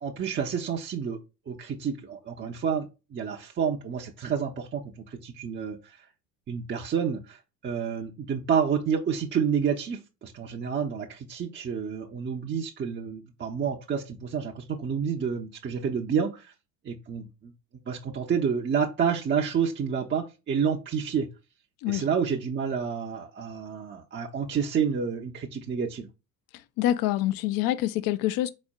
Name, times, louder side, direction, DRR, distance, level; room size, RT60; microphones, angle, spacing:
voice 1, 0.0-6.0 6.5-16.5 16.8-17.5 17.9-21.3 21.9-26.1, right 7 dB, 25° right, 0.7 m, -29 dB
voice 2, 26.8-28.5, left 13 dB, 50° left, 0.6 m, -26 dB
4.2 x 4.2 x 2.3 m
hypercardioid pair, 75°, 47 cm